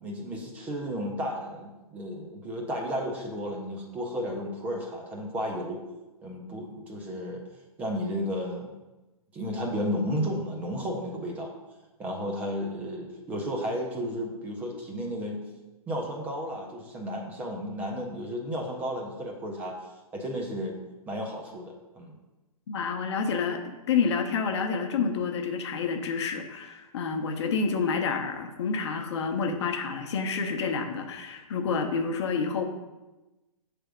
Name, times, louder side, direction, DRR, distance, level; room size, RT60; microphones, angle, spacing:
voice 1, 0.0-5.8 6.2-7.4 7.8-8.8 9.3-11.5 12.0-15.4 15.9-19.7 20.1-20.8 21.1-22.1, equal, 10° right, 0 dB, 0.4 m, -33 dB
voice 2, 22.7-32.6, left 5 dB, 50° left, 5 dB, 0.7 m, -29 dB
7.1 x 3.4 x 4.9 m, 1.1 s
hypercardioid pair, 165°, 19 cm